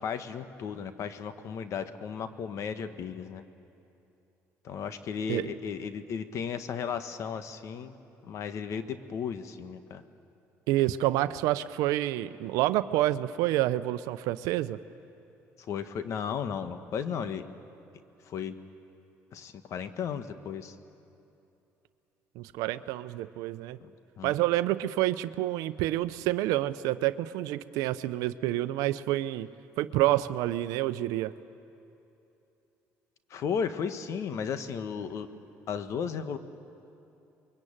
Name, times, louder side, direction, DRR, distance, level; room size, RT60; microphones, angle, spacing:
voice 1, 0.0-3.4 4.6-7.9 8.2-10.0 15.6-17.5 18.2-18.5 19.3-20.7 23.8-24.3 33.3-35.3 35.7-36.4, left 7 dB, 60° left, 10 dB, 1.4 m, -35 dB
voice 2, 10.7-14.8 22.4-23.8 24.2-29.5 29.8-31.3, right 15 dB, 85° right, 13 dB, 0.7 m, -28 dB
24.0 x 22.5 x 8.9 m, 2.8 s
supercardioid pair, 90°, 6 cm